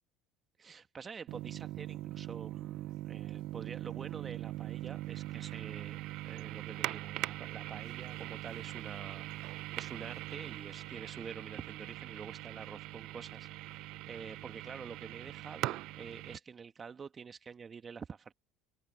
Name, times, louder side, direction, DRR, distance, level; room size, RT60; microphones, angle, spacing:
voice 1, 0.6-18.3, right 6 dB, 30° right, 2.0 m, -47 dB
sound 1, 1.3-16.4, right 18 dB, 65° right, 0.5 m, -41 dB
hypercardioid pair, 80°, 0 cm